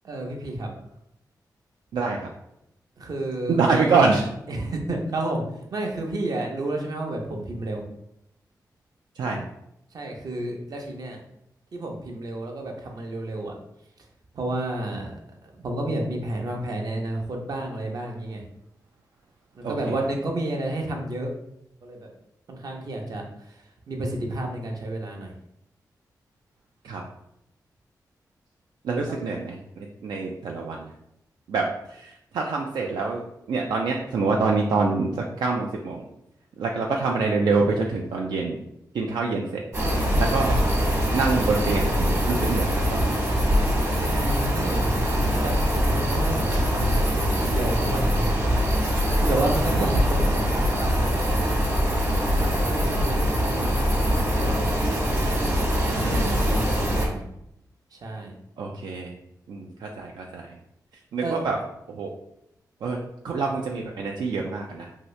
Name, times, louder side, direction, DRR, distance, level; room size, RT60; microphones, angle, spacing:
voice 1, 0.0-0.7 3.0-3.9 4.5-5.4 5.7-7.8 9.9-11.2 11.7-13.5 14.3-18.4 19.5-21.3 21.8-22.1 22.5-25.3 29.1-29.2 44.0-47.1 47.4-48.3 49.2-51.6 52.3-53.9 54.3-54.8 55.8-57.2 57.9-58.3 61.2-61.5, right 2 dB, 60° right, 1 dB, 0.7 m, -31 dB
voice 2, 1.9-2.3 3.5-4.2 9.2-9.4 19.6-19.7 26.8-27.0 28.8-29.6 30.0-30.9 31.5-33.2 33.5-36.0 36.6-38.6 38.9-39.6 40.2-40.6 41.1-43.3 49.7-49.9 56.0-56.3 58.6-59.1 59.5-60.5 61.1-61.6 61.9-62.1 62.8-63.0 63.2-64.9, right 4 dB, 85° right, 0 dB, 0.3 m, -25 dB
sound 1, 39.7-57.1, equal, 40° right, 1.1 m, -23 dB
2.8 x 2.7 x 3.1 m, 0.80 s
cardioid pair, 75°, 7 cm